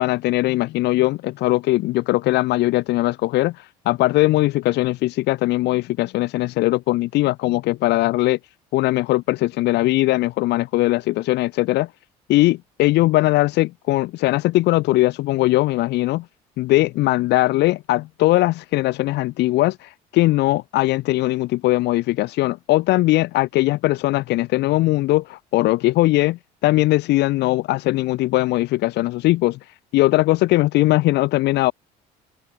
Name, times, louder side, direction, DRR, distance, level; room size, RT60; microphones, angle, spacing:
voice 1, 0.0-8.4 8.7-11.9 12.3-16.2 16.6-31.7, left 18 dB, 60° left, 0.7 m, -20 dB
hypercardioid pair, 65°, 20 cm